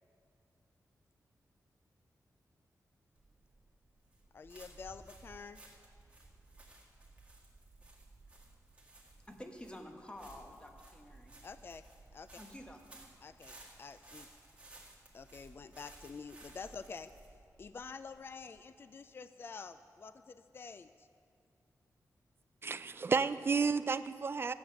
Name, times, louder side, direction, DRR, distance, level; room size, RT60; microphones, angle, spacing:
sound 1, 3.2-18.7, right 2 dB, 20° right, 1.9 m, -58 dB
voice 1, 4.3-5.6 11.4-11.8 12.1-12.4 13.2-14.3 15.1-17.1 17.6-21.1, left 5 dB, 35° left, 12 dB, 0.3 m, -48 dB
voice 2, 9.2-11.4 12.4-13.1, left 1 dB, 15° left, 3 dB, 1.2 m, -50 dB
voice 3, 22.6-24.5, right 5 dB, 35° right, 14 dB, 0.4 m, -31 dB
13.5 x 8.4 x 6.4 m, 2.3 s
wide cardioid pair, 130°, 7 cm